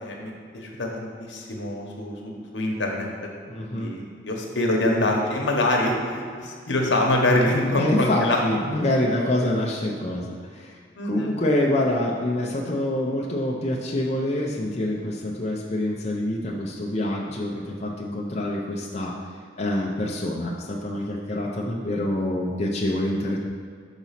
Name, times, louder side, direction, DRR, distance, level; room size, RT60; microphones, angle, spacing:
voice 1, 0.0-3.1 3.7-8.4 11.0-11.3, left 1 dB, 75° left, 0 dB, 1.1 m, -25 dB
voice 2, 3.5-3.9 7.8-10.8 11.0-19.1 19.6-23.4, left 1 dB, 35° left, -3 dB, 0.6 m, -26 dB
6.1 x 4.0 x 5.8 m, 2.1 s
head